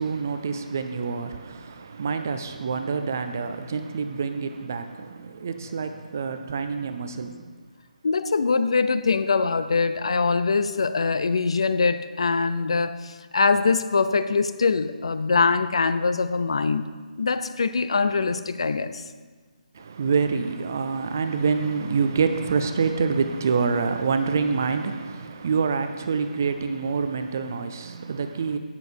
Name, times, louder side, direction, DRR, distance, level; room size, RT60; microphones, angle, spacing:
voice 1, 0.0-7.4 19.7-28.6, right 5 dB, 20° right, 0.4 m, -26 dB
voice 2, 8.0-16.9 17.2-19.0, left 4 dB, 40° left, 0.5 m, -23 dB
16.5 x 7.0 x 4.4 m
hypercardioid pair, 180°, 5 cm